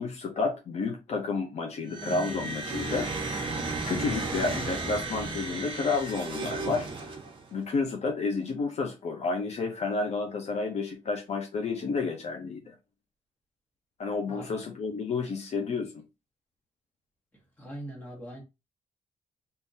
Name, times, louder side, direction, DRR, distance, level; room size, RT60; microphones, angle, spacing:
voice 1, 0.0-3.4 3.8-6.9 7.5-12.7 14.0-15.9, left 4 dB, 55° left, 0.7 m, -30 dB
sound 1, 1.9-7.5, right 3 dB, 40° right, 0.9 m, -34 dB
voice 2, 17.6-18.4, right 1 dB, 10° left, 1.3 m, -41 dB
3.7 x 2.7 x 2.7 m
wide cardioid pair, 155°, 13 cm